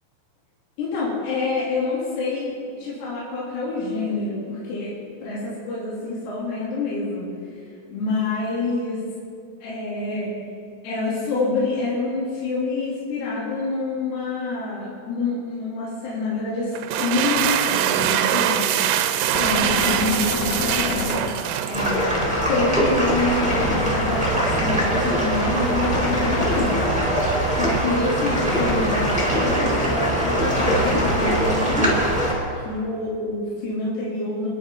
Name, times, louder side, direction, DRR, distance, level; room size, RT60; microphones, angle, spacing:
voice 1, 0.8-4.9 5.2-7.3 7.9-9.0 9.6-10.4 10.8-16.7 17.0-18.7 19.3-21.1 21.6-22.1 22.5-27.1 27.6-31.9 32.7-34.5, left 3 dB, 55° left, -8 dB, 5.4 m, -27 dB
sound 1, 16.7-22.3, right 11 dB, 85° right, 3.2 m, -23 dB
Gunshot gunfire, 19.3-21.8 23.4-24.4 25.8-27.2 28.6-29.4 30.6-31.7, left 3 dB, 90° left, 1.6 m, -29 dB
sound 2, 21.7-32.3, right 1 dB, ahead, 4.7 m, -22 dB
30.0 x 11.5 x 4.1 m, 2.3 s
omnidirectional pair, 5.7 m